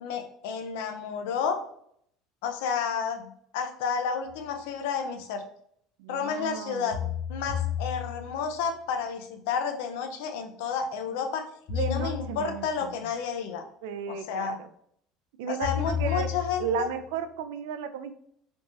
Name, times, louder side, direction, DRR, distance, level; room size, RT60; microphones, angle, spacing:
voice 1, 0.0-1.6 2.4-5.4 6.1-7.0 7.3-11.5 11.7-13.6 14.1-14.6 15.5-16.9, left 6 dB, 85° left, 6 dB, 0.5 m, -31 dB
sound 1, 4.3-4.4 6.9-8.5 11.7-12.8 15.6-16.9, left 9 dB, 50° left, 1.0 m, -32 dB
voice 2, 6.0-7.2 11.7-13.1 13.8-14.7 15.4-16.3 16.6-18.1, right 6 dB, 85° right, 10 dB, 0.4 m, -34 dB
3.4 x 2.6 x 3.2 m, 0.68 s
cardioid pair, 125°, 0 cm